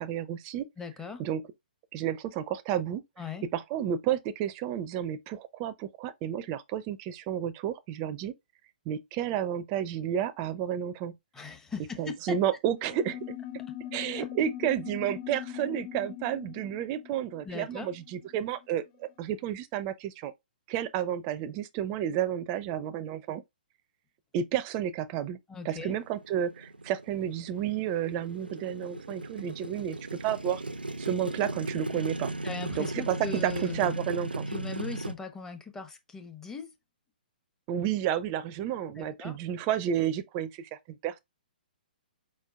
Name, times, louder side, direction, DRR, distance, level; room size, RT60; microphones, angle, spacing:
voice 1, 0.0-0.7 1.2-1.4 1.9-3.0 3.5-8.3 8.9-11.2 12.0-13.3 13.9-20.3 20.7-23.4 24.3-25.4 25.6-30.6 31.0-32.3 32.8-33.2 33.4-34.5 37.7-41.2, right 10 dB, 30° right, 0.6 m, -31 dB
voice 2, 0.8-1.2 3.2-3.5 11.3-12.4 14.2-14.3 17.4-17.9 25.5-26.0 32.4-33.9 34.5-36.7 39.0-39.4, left 4 dB, 10° left, 0.9 m, -39 dB
sound 1, 12.8-18.7, left 11 dB, 30° left, 0.5 m, -41 dB
Motorcycle, 25.8-35.1, right 2 dB, 90° right, 0.6 m, -37 dB
4.7 x 4.5 x 2.4 m
figure-of-eight pair, 125°, 5 cm